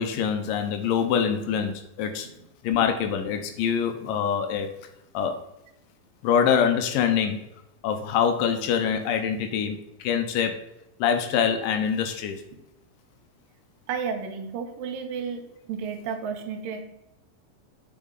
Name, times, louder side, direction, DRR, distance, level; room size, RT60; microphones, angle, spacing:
voice 1, 0.0-2.3 2.6-4.7 5.1-5.3 6.2-7.4 7.8-10.6 11.0-12.4, left 7 dB, 80° left, 6 dB, 2.2 m, -24 dB
voice 2, 13.9-15.4 15.7-16.8, right 6 dB, 80° right, 5 dB, 2.3 m, -32 dB
7.3 x 4.8 x 3.9 m, 0.87 s
omnidirectional pair, 4.1 m